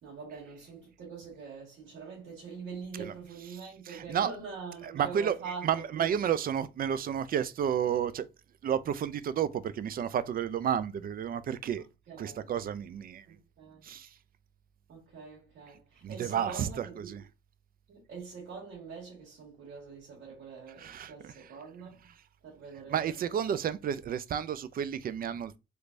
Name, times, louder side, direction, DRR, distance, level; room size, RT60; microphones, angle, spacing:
voice 1, 0.0-5.7 6.0-6.2 12.1-12.5 13.3-13.9 14.9-17.1 17.9-22.0 22.4-23.2, right 5 dB, 75° right, 1.8 m, -44 dB
voice 2, 3.5-4.3 4.8-8.3 8.6-11.8 12.2-13.3 13.8-14.2 15.7-17.2 20.8-21.5 22.9-25.6, right 9 dB, 45° right, 0.4 m, -32 dB
3.2 x 3.2 x 2.5 m
cardioid pair, 90°, 20 cm